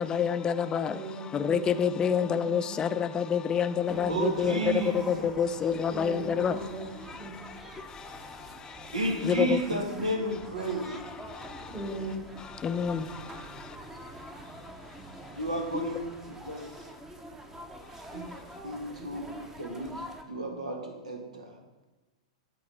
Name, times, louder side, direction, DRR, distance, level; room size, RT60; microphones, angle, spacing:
voice 1, 0.0-6.6 7.1-9.8 10.6-11.8 12.4-15.4 15.7-16.0 16.6-17.0 17.8-18.6, left 7 dB, 20° left, 0.4 m, -30 dB
voice 2, 0.9-2.8 3.9-4.9 5.9-7.3 9.9-10.0 11.7-12.3, right 2 dB, 30° right, 2.0 m, -39 dB
sound 1, 3.9-20.2, right 1 dB, 10° right, 0.8 m, -45 dB
voice 3, 4.1-5.3 8.9-11.0 15.3-16.1 16.5-16.6 18.1-18.2 18.6-21.5, right 2 dB, 85° right, 1.5 m, -32 dB
8.5 x 3.9 x 6.4 m
hypercardioid pair, 105°, 4 cm